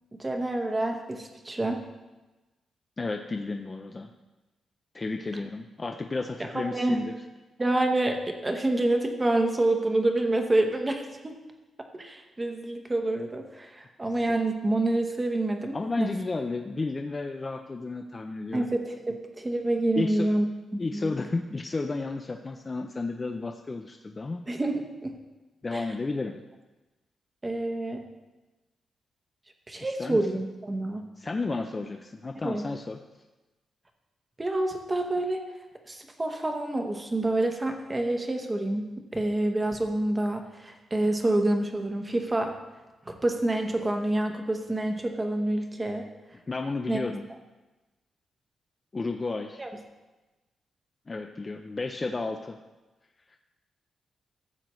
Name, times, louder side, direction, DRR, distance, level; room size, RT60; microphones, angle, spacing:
voice 1, 0.2-1.8 6.5-7.0 7.6-11.3 11.9-16.2 18.5-21.2 24.5-25.2 25.7-25.9 27.4-28.0 29.7-31.0 32.4-32.7 34.4-35.4 35.8-42.5 43.1-46.1 46.9-47.0 49.6-49.7, right 2 dB, 15° right, 4 dB, 0.9 m, -27 dB
voice 2, 3.0-4.1 4.9-7.1 14.3-14.4 15.7-18.7 20.0-20.3 20.8-24.4 25.6-26.4 30.0-30.2 31.2-33.0 46.5-47.2 48.9-49.6 51.1-52.6 53.3-53.4, left 3 dB, 20° left, 3 dB, 0.4 m, -32 dB
14.5 x 7.7 x 3.1 m, 1.1 s
wide cardioid pair, 175°, 0 cm